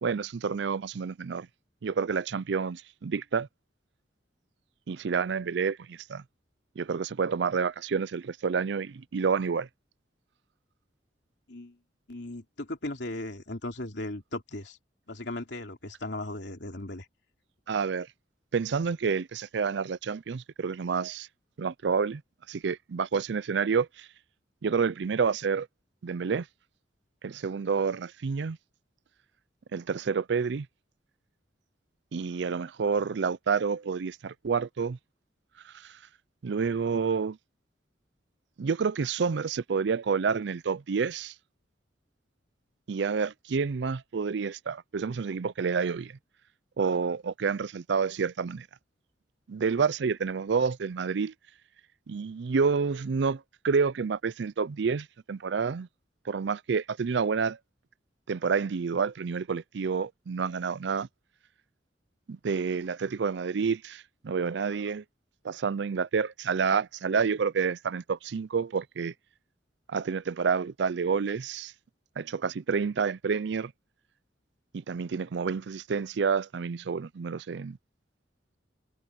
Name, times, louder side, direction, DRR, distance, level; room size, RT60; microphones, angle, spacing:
voice 1, 0.0-1.5 1.8-3.5 4.9-6.2 6.8-9.7 17.7-18.1 18.5-21.3 21.6-22.2 22.5-24.1 24.6-25.7 26.0-26.5 27.2-28.6 29.7-30.7 32.1-35.0 35.6-36.0 36.4-37.4 38.6-41.3 42.9-46.2 46.8-48.7 49.5-51.3 52.1-55.9 56.3-57.6 58.3-61.1 62.3-65.0 65.4-69.1 69.9-71.7 72.2-73.7 74.7-77.8, right 5 dB, 65° right, 0.4 m, -29 dB
voice 2, 12.1-14.8 15.1-17.0, left 1 dB, 65° left, 3.1 m, -37 dB
head